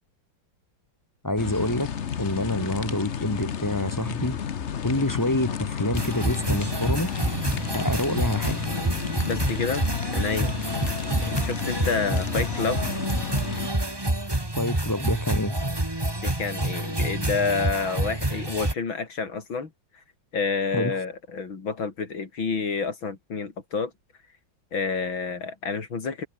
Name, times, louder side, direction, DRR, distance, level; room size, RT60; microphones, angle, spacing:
voice 1, 1.2-1.9 2.2-4.4 4.8-7.1 7.7-8.6 14.6-15.6 20.7-20.9, left 1 dB, 10° left, 5.6 m, -27 dB
sound 1, 1.4-13.7, left 8 dB, 45° left, 1.1 m, -32 dB
sound 2, 5.9-18.7, right 1 dB, 10° right, 2.6 m, -28 dB
voice 2, 9.2-9.9 10.1-10.6 11.2-12.8 16.2-19.7 20.3-23.9 24.7-26.3, left 4 dB, 85° left, 4.0 m, -29 dB
omnidirectional pair, 2.1 m